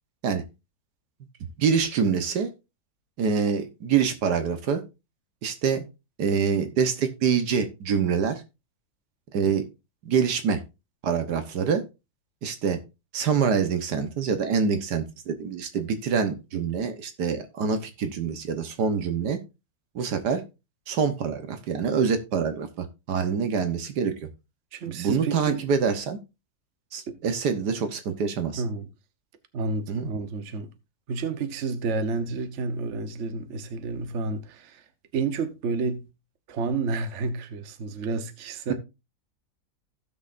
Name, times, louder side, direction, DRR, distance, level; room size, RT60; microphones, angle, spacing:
voice 1, 1.6-2.5 3.2-4.8 5.4-5.8 6.2-8.4 9.3-9.7 10.0-10.6 11.0-11.8 12.4-12.8 13.1-19.4 20.0-20.4 20.9-24.1 24.9-26.2 26.9-28.6 29.9-30.1, right 6 dB, 80° right, 1.7 m, -25 dB
voice 2, 24.7-25.6 27.1-27.2 28.6-28.9 29.5-30.7 31.1-34.8 35.1-36.0 36.5-38.7, right 4 dB, 50° right, 1.2 m, -30 dB
16.0 x 6.3 x 2.5 m
omnidirectional pair, 1.7 m